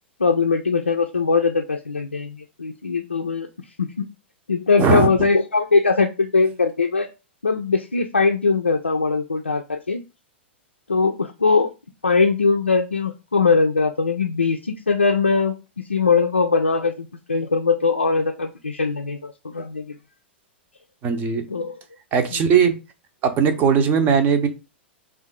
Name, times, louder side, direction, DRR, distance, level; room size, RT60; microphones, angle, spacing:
voice 1, 0.2-3.5 3.8-3.9 4.5-7.1 7.4-10.0 10.9-11.7 12.0-15.5 15.9-20.0 21.5-21.8 22.3-22.5, left 4 dB, 85° left, 3 dB, 0.4 m, -21 dB
voice 2, 4.8-5.1 21.0-21.5 22.1-22.7 23.2-24.5, right 6 dB, 30° right, 8 dB, 0.6 m, -18 dB
3.5 x 2.5 x 3.6 m, 0.29 s
figure-of-eight pair, 100°, 6 cm